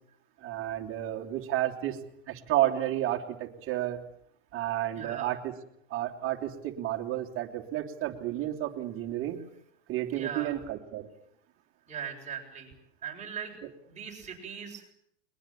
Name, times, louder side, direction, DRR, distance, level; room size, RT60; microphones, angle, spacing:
voice 1, 0.4-2.0 2.3-4.0 4.5-5.5 5.9-9.4 9.9-11.1, right 13 dB, 40° right, 1 dB, 3.0 m, -31 dB
voice 2, 4.9-5.3 10.1-10.5 11.9-12.7 13.0-13.6 13.9-14.9, right 7 dB, 20° right, 0 dB, 7.5 m, -39 dB
21.5 x 21.0 x 9.0 m, 0.73 s
supercardioid pair, 130°, 34 cm